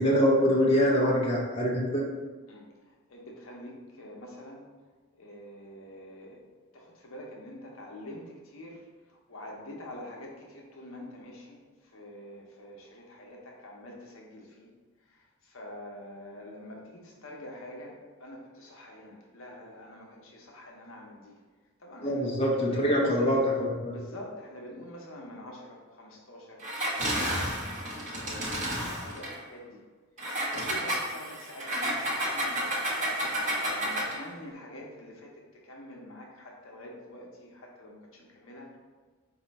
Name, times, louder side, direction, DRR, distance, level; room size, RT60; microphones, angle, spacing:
voice 1, 0.0-2.0 22.0-23.9, equal, 25° left, -4 dB, 0.7 m, -24 dB
voice 2, 2.5-4.6 5.2-6.4 6.7-14.7 15.1-21.3 21.8-23.3 23.9-27.5 28.2-29.8 30.4-32.6 33.3-38.8, left 1 dB, 65° left, -1 dB, 0.8 m, -46 dB
Engine, 26.6-29.4 30.2-34.2, right 1 dB, 35° right, 0.9 m, -31 dB
4.3 x 2.7 x 4.0 m, 1.4 s
head